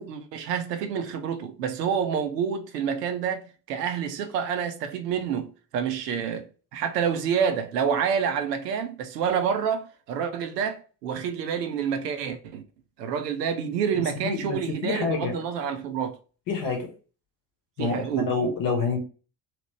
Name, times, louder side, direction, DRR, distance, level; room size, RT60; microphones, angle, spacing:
voice 1, 0.0-12.6 13.0-16.2 17.8-18.3, right 7 dB, 75° right, 0.6 m, -28 dB
voice 2, 14.2-14.6 14.8-15.4 16.5-16.9 17.8-19.0, left 4 dB, 40° left, 0.9 m, -27 dB
2.9 x 2.1 x 3.0 m
figure-of-eight pair, 50°, 49 cm